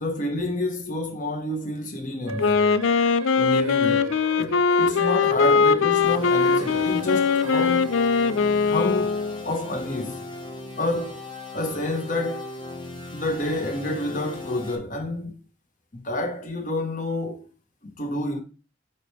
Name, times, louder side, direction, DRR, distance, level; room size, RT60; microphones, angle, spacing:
voice 1, 0.0-2.6 3.3-7.9 8.7-10.2 10.8-11.2 11.5-12.5 13.1-15.3 15.9-17.5 18.0-18.4, left 1 dB, 40° left, 1.2 m, -29 dB
Wind instrument woodwind instrument, 2.3-9.5, left 5 dB, 65° left, 0.4 m, -21 dB
sound 1, 2.3-8.8, right 2 dB, 85° right, 0.8 m, -38 dB
sound 2, 6.0-14.7, left 2 dB, 20° left, 1.0 m, -38 dB
8.9 x 4.6 x 3.3 m
head